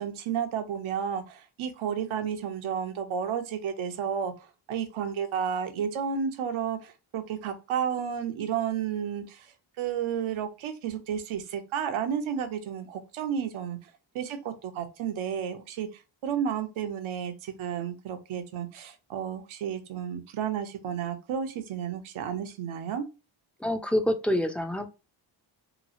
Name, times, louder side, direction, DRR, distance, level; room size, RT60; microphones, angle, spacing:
voice 1, 0.0-4.3 4.7-9.5 9.8-13.8 14.1-15.9 16.2-23.0, right 8 dB, 75° right, 8 dB, 0.7 m, -32 dB
voice 2, 23.6-24.9, left 1 dB, 5° left, 6 dB, 0.4 m, -27 dB
3.0 x 2.4 x 2.7 m, 0.29 s
cardioid pair, 60°, 49 cm